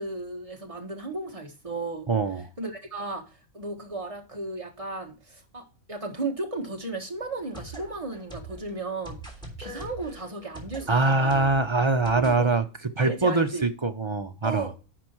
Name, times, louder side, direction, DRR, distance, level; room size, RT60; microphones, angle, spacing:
voice 1, 0.0-2.1 2.6-3.2 3.5-9.2 9.6-11.5 12.1-12.5 13.0-13.7 14.4-14.8, right 3 dB, 25° right, 1.6 m, -34 dB
voice 2, 2.1-2.5 10.9-12.6 13.0-14.7, right 3 dB, 40° right, 0.4 m, -23 dB
sound 1, 7.2-12.4, right 1 dB, 5° left, 3.3 m, -43 dB
11.0 x 4.7 x 4.5 m
omnidirectional pair, 1.5 m